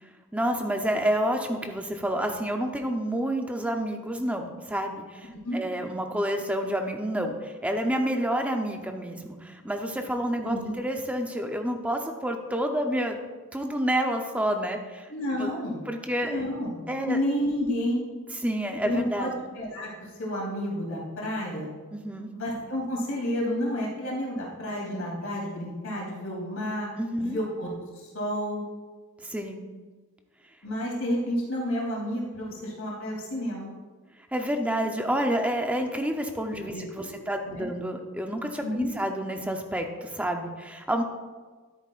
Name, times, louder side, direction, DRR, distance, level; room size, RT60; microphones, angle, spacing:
voice 1, 0.3-13.2 13.5-15.5 15.9-16.4 16.9-17.2 18.4-19.3 21.9-22.3 27.0-27.4 29.2-29.6 34.3-41.0, equal, 5° right, 4 dB, 0.7 m, -29 dB
voice 2, 10.4-10.7 15.1-15.9 16.2-16.8 17.1-18.0 18.8-19.9 20.2-21.7 22.3-26.9 27.2-28.6 30.6-33.7 36.7-37.1 37.4-37.7 38.6-38.9, equal, 75° left, -4 dB, 3.2 m, -30 dB
12.5 x 9.8 x 2.5 m, 1.4 s
head